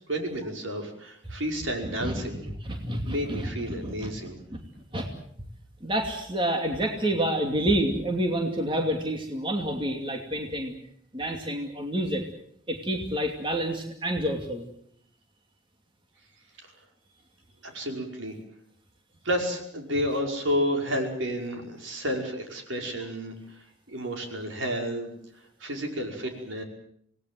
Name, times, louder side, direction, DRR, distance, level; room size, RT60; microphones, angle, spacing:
voice 1, 0.1-2.4 3.0-4.4 17.6-18.3 19.2-23.3 23.9-25.1 25.6-26.6, equal, 75° right, 3 dB, 5.5 m, -31 dB
voice 2, 1.8-2.2 2.6-3.5 3.8-4.1 4.5-4.6 4.9-5.1 5.8-10.7 11.1-12.2 12.7-14.7, right 1 dB, 25° right, 3 dB, 2.6 m, -28 dB
27.0 x 19.0 x 7.8 m, 0.67 s
head